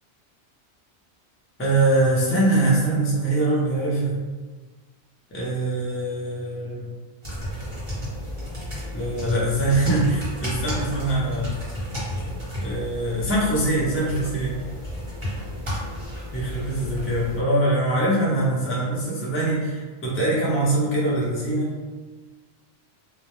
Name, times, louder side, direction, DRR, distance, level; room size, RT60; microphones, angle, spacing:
voice 1, 1.6-4.2 5.3-6.9 8.9-11.6 12.6-14.6 16.3-21.7, right 2 dB, 20° left, -7 dB, 0.4 m, -23 dB
sound 1, 7.2-17.4, equal, 30° right, 0.8 m, -32 dB
2.1 x 2.0 x 2.9 m, 1.3 s
omnidirectional pair, 1.1 m